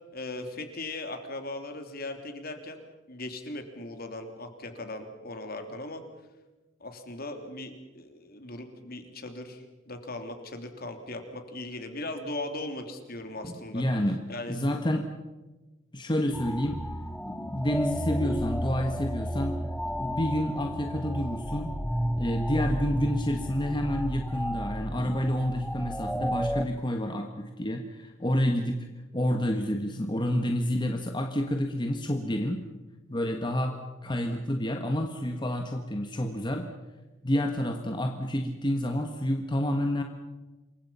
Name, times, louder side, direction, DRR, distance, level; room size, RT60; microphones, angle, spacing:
voice 1, 0.1-6.0 6.8-13.8 14.3-14.6, left 2 dB, 50° left, 5 dB, 3.2 m, -38 dB
voice 2, 13.4-15.1 15.9-16.8 17.2-19.5 20.0-21.7 22.2-28.9 29.1-32.6 33.1-33.7 34.0-36.7 37.2-40.0, equal, 25° left, 4 dB, 1.5 m, -29 dB
sound 1, 16.3-26.6, equal, 5° left, 0.8 m, -32 dB
28.0 x 23.5 x 5.7 m, 1.1 s
head